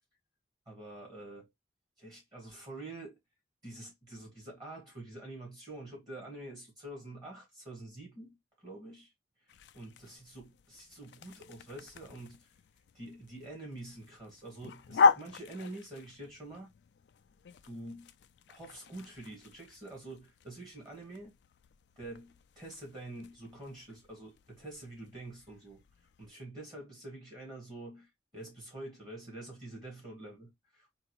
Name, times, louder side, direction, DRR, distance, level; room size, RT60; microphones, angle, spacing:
voice 1, 0.6-1.5 2.0-3.2 3.6-9.1 9.4-12.5 12.9-16.7 17.6-18.1 18.5-21.3 22.0-25.8 26.2-31.0, right 2 dB, 25° right, 1.7 m, -47 dB
sound 1, 9.5-26.3, left 4 dB, 75° left, 0.3 m, -37 dB
3.7 x 2.6 x 2.9 m
head